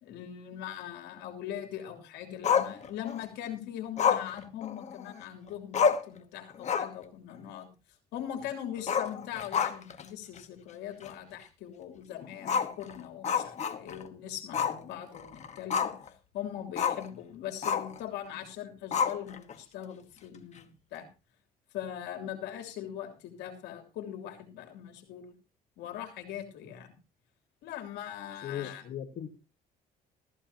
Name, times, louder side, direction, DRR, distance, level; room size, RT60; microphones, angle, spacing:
voice 1, 0.0-7.7 8.1-15.9 16.3-21.1 21.7-25.3 25.8-26.9 27.6-28.8, left 10 dB, 85° left, 4 dB, 3.1 m, -41 dB
Growling, 2.4-3.2 4.0-5.2 5.5-5.6 5.7-6.2 6.5-7.0 7.3-7.4 8.8-10.0 10.4-10.5 11.0-11.1 12.4-14.1 14.5-14.8 15.1-16.1 16.8-17.1 17.6-18.0 18.9-19.5, left 7 dB, 45° left, 1.3 m, -29 dB
voice 2, 28.3-29.3, left 10 dB, 60° left, 4 dB, 1.4 m, -38 dB
15.0 x 14.5 x 2.8 m, 0.29 s
cardioid pair, 110°, 17 cm